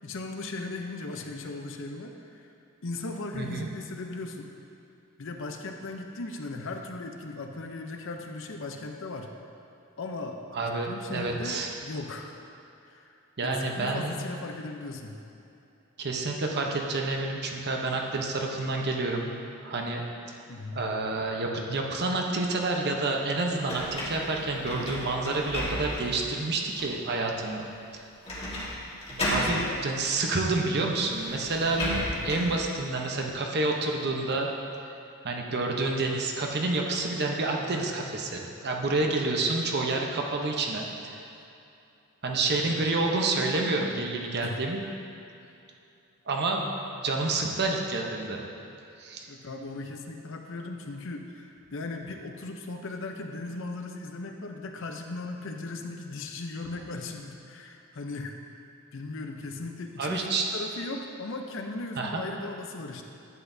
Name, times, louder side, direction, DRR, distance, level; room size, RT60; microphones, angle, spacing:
voice 1, 0.0-2.5 2.8-4.5 5.2-9.3 10.0-12.4 12.8-13.1 13.4-15.2 20.5-20.8 29.3-29.8 42.4-42.9 44.4-44.6 49.3-58.3 58.9-63.0, left 2 dB, 65° left, 3 dB, 0.7 m, -38 dB
voice 2, 3.3-3.7 10.5-11.7 13.4-14.2 16.0-19.3 19.6-20.4 20.7-27.7 27.9-28.0 29.1-31.9 32.2-34.5 35.2-41.2 42.2-44.8 46.3-48.4 49.0-49.3 60.0-60.5 62.0-62.2, right 3 dB, 50° right, 1 dB, 0.9 m, -29 dB
sound 1, 23.7-26.2 26.7-26.8 28.2-28.7 29.0-29.6 30.6-30.7 31.1-32.6, left 1 dB, 30° left, 1.6 m, -33 dB
11.0 x 8.1 x 2.7 m, 2.8 s
head